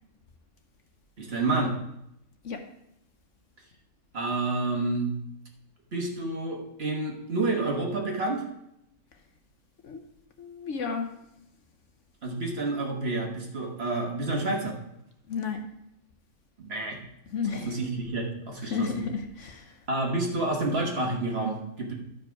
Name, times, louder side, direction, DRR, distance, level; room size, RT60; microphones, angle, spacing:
voice 1, 1.2-1.7 4.1-5.1 5.9-8.4 12.2-14.7 16.6-17.0 17.5-18.9 19.9-21.9, right 2 dB, 45° right, 0 dB, 1.6 m, -29 dB
voice 2, 10.4-11.1 15.3-15.6 17.3-17.7 18.6-19.8, left 5 dB, 60° left, 5 dB, 1.1 m, -32 dB
11.5 x 5.2 x 4.7 m, 0.80 s
omnidirectional pair, 1.5 m